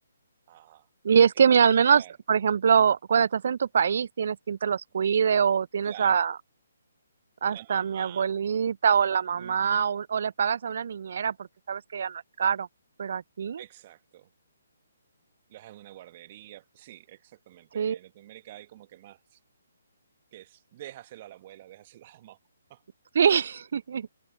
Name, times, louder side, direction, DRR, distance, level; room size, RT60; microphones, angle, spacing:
voice 1, 0.5-0.9 1.9-2.1 5.8-6.2 7.5-8.4 9.3-9.8 13.6-14.3 15.5-19.4 20.3-22.4 22.7-22.8, right 14 dB, 35° right, 1.6 m, -48 dB
voice 2, 1.0-2.0 2.3-6.4 7.4-12.7 13.0-13.6 17.7-18.0 23.1-24.1, right 7 dB, 50° right, 0.5 m, -24 dB
figure-of-eight pair, 135°, 0 cm